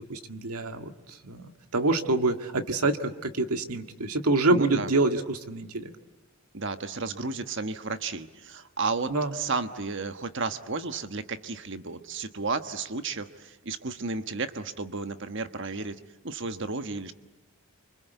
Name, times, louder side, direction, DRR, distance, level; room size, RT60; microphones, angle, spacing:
voice 1, 0.0-5.9 9.1-9.3, right 2 dB, 85° right, 7 dB, 1.9 m, -26 dB
voice 2, 4.5-4.9 6.5-15.9 16.2-17.1, right 4 dB, 55° right, 10 dB, 1.3 m, -33 dB
28.5 x 25.5 x 8.2 m, 1.1 s
head